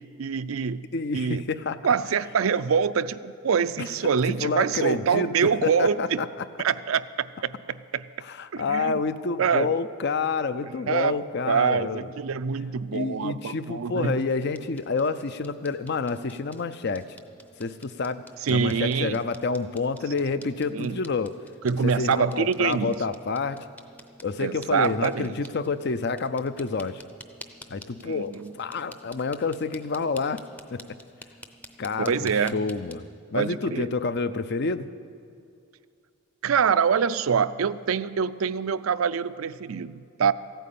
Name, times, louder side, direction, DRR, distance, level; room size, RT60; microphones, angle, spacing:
voice 1, 0.0-0.8 1.1-1.4 1.8-6.2 6.6-7.5 7.9-8.0 8.5-9.0 9.4-9.7 10.6-11.2 11.5-14.2 18.4-19.2 20.7-21.0 21.6-22.9 24.4-25.3 28.0-28.5 32.0-32.6 33.3-33.9 36.4-40.3, right 6 dB, 80° right, 14 dB, 0.4 m, -25 dB
voice 2, 0.9-1.8 4.4-6.3 8.2-12.1 12.9-17.1 17.6-18.2 18.5-21.4 21.8-23.7 24.2-27.0 27.7-30.4 30.7-30.8 31.8-33.0 33.3-34.9, left 4 dB, 55° left, 13 dB, 0.5 m, -28 dB
sound 1, 14.1-32.9, left 1 dB, 10° left, 0.6 m, -50 dB
15.0 x 9.2 x 8.5 m, 2.4 s
head